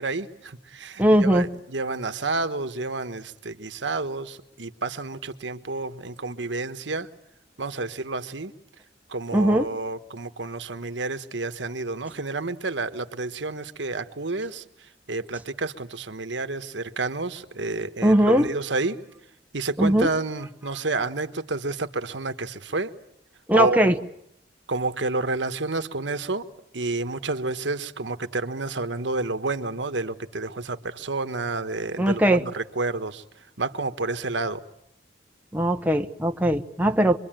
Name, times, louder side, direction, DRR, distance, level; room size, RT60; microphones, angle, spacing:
voice 1, 0.0-7.1 7.6-8.5 9.1-14.6 15.1-19.0 19.5-22.9 23.5-23.9 24.7-26.4 26.7-33.2 33.6-34.6, right 3 dB, 75° right, 9 dB, 1.3 m, -29 dB
voice 2, 1.0-1.5 9.3-9.7 18.0-18.5 19.8-20.1 23.5-24.0 32.0-32.4 35.5-37.2, right 1 dB, 10° right, 4 dB, 1.0 m, -20 dB
26.5 x 23.5 x 9.1 m, 0.75 s
head